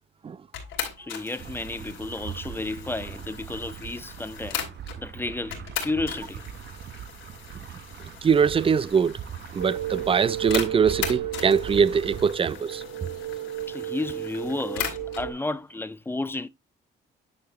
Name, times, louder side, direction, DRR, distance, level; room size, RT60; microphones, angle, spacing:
sound 1, 0.5-5.0 5.5-15.3, left 8 dB, 90° left, 2.6 m, -38 dB
voice 1, 1.0-4.6 5.0-6.4 13.7-16.5, left 2 dB, 10° left, 0.6 m, -32 dB
sound 2, 1.4-12.3, right 9 dB, 60° right, 1.0 m, -41 dB
voice 2, 8.2-9.2 9.5-12.8, right 6 dB, 30° right, 0.4 m, -22 dB
sound 3, 9.6-15.3, right 12 dB, 75° right, 2.1 m, -33 dB
9.5 x 4.8 x 2.9 m
cardioid pair, 90°, 20 cm